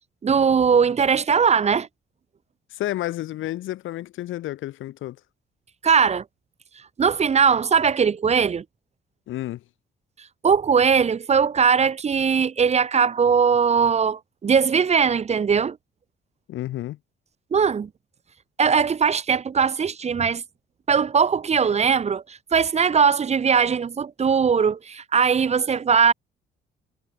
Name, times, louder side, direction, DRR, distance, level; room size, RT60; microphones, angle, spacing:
voice 1, 0.2-1.9 5.8-6.2 7.0-8.6 10.4-15.8 17.5-17.9 18.6-20.4 20.9-26.1, right 6 dB, 35° right, 0.6 m, -20 dB
voice 2, 2.7-5.2 9.3-9.6 16.5-17.0, left 14 dB, 85° left, 1.6 m, -30 dB
cardioid pair, 90°, 20 cm